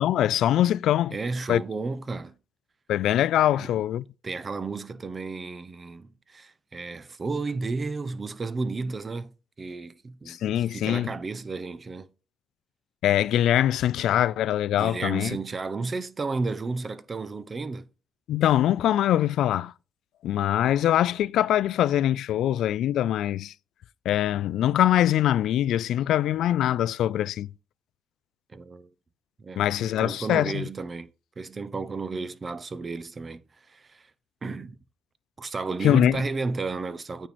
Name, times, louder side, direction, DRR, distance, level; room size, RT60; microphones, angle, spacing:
voice 1, 0.0-1.2 1.5-1.6 2.9-4.0 10.3-11.1 13.0-15.4 18.3-19.7 20.2-23.5 24.1-27.5 29.6-30.6 35.8-36.2, left 12 dB, 80° left, 0.3 m, -23 dB
voice 2, 1.1-2.4 3.5-3.7 4.2-9.3 9.6-12.1 14.8-17.9 28.5-28.9 29.4-31.1 31.4-34.1 34.4-34.8 35.4-37.3, right 3 dB, 35° right, 0.7 m, -33 dB
9.0 x 4.5 x 4.2 m
cardioid pair, 90°, 0 cm